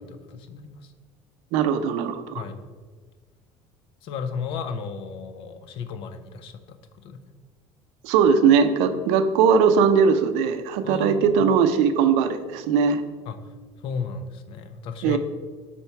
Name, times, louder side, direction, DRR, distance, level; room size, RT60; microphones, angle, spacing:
voice 1, 0.1-0.9 2.3-2.6 4.0-6.8 7.0-7.2 10.8-11.4 13.3-13.5 13.8-15.2, left 5 dB, 55° left, 9 dB, 0.5 m, -34 dB
voice 2, 1.5-2.4 8.0-13.0 15.0-15.2, right 6 dB, 80° right, 10 dB, 0.5 m, -20 dB
4.5 x 4.2 x 5.6 m, 1.5 s
cardioid pair, 170°, 11 cm